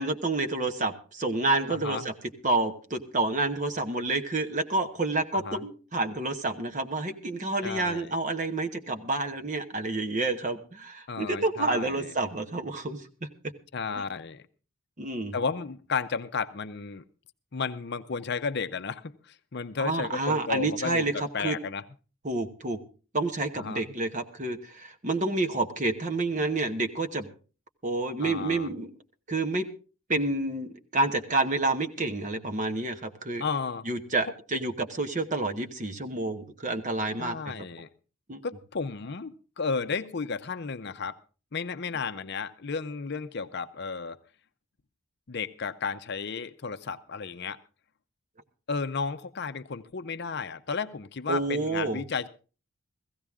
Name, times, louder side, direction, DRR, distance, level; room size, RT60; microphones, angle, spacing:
voice 1, 0.0-2.1 2.4-13.3 13.9-14.0 15.0-15.4 19.8-21.6 22.2-22.8 23.1-27.3 27.8-28.9 29.3-29.7 30.1-33.4 33.8-37.4 38.3-38.4 51.3-52.0, right 2 dB, 35° right, 7 dB, 1.1 m, -29 dB
voice 2, 1.7-2.0 5.4-5.6 7.6-8.1 11.1-12.1 13.7-14.4 15.3-17.0 17.5-21.8 23.6-23.8 28.2-28.7 33.4-33.8 37.2-37.9 38.4-41.1 41.5-44.2 45.3-47.6 48.7-52.3, left 5 dB, 50° left, 11 dB, 0.6 m, -33 dB
16.0 x 15.5 x 3.6 m, 0.36 s
head